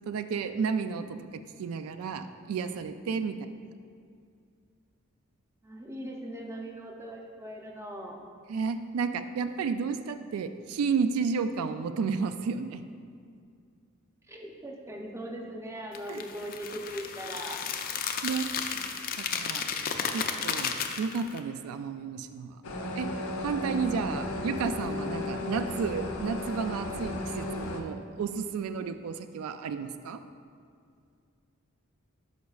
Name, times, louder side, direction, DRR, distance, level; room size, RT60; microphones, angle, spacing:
voice 1, 0.1-3.5 8.5-12.8 16.1-16.2 18.2-18.9 19.3-19.7 20.1-22.6 22.9-23.1 23.4-30.2, right 5 dB, 85° right, 11 dB, 0.3 m, -32 dB
voice 2, 5.6-8.2 14.3-17.6, equal, 15° right, 0 dB, 0.6 m, -40 dB
sound 1, 15.9-21.4, left 7 dB, 45° left, 0.4 m, -33 dB
sound 2, 22.6-27.8, left 1 dB, 75° left, 0.7 m, -34 dB
11.5 x 5.2 x 2.4 m, 2.3 s
head